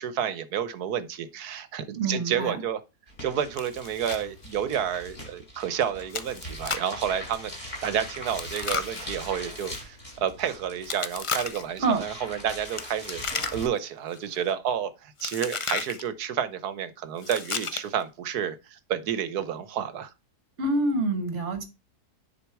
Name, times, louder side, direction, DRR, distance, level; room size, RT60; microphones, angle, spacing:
voice 1, 0.0-2.8 3.2-20.1, right 8 dB, 75° right, 1.4 m, -30 dB
voice 2, 2.0-2.6 11.8-12.0 20.6-21.6, right 2 dB, 50° right, 1.7 m, -26 dB
sound 1, 3.1-13.7, equal, 25° left, 5.5 m, -41 dB
Chewing mastication, 3.6-4.2 4.5-4.6 5.1-5.2 6.1-7.0 8.3-9.8 10.8-11.8 12.7-13.8 14.1-14.5 15.2-16.0 17.2-18.0, left 5 dB, 50° left, 0.3 m, -34 dB
10.0 x 4.9 x 4.7 m
omnidirectional pair, 1.7 m